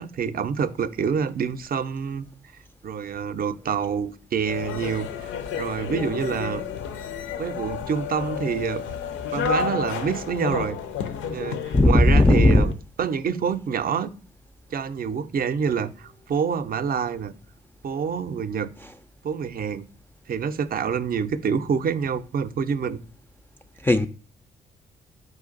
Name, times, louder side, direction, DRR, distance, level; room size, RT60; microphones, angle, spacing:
voice 1, 0.0-2.3 2.8-6.6 7.4-8.8 9.3-10.8 11.3-12.7 13.0-14.1 14.7-17.3 17.8-18.7 19.2-19.9 20.3-23.0, right 6 dB, 45° right, 0.6 m, -27 dB
sound 1, 4.5-12.7, left 6 dB, 70° left, 0.6 m, -31 dB
voice 2, 11.7-12.7 18.8-18.9 23.8-24.1, left 2 dB, 10° left, 0.4 m, -16 dB
4.7 x 2.4 x 3.9 m
hypercardioid pair, 40°, 21 cm